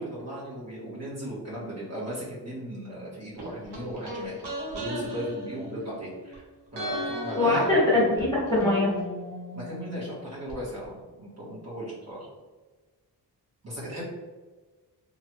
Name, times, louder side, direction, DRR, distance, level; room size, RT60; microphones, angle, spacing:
voice 1, 0.0-4.4 4.7-6.5 6.7-7.7 9.5-12.3 13.6-14.0, right 1 dB, 40° right, -8 dB, 1.2 m, -36 dB
sound 1, 3.4-6.3 6.7-10.6 10.8-10.9, equal, 90° right, 1.0 m, -37 dB
voice 2, 7.3-8.9, left 2 dB, 10° left, -8 dB, 1.2 m, -22 dB
2.9 x 2.5 x 2.9 m, 1.3 s
wide cardioid pair, 100°, 41 cm